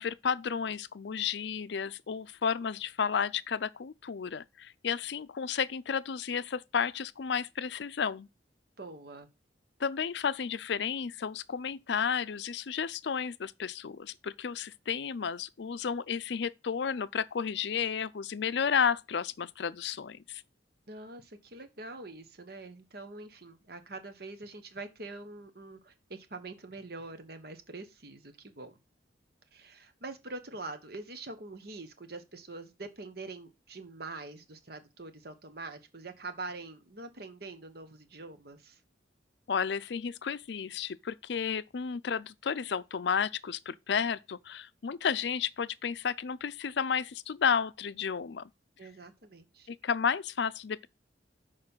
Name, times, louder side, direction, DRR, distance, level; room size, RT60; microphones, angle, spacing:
voice 1, 0.0-8.3 9.8-20.4 39.5-48.4 49.7-50.9, left 7 dB, 65° left, 0.5 m, -32 dB
voice 2, 8.8-9.3 20.9-28.8 29.5-38.8 48.8-49.7, right 3 dB, 55° right, 1.2 m, -44 dB
6.6 x 5.2 x 5.5 m
head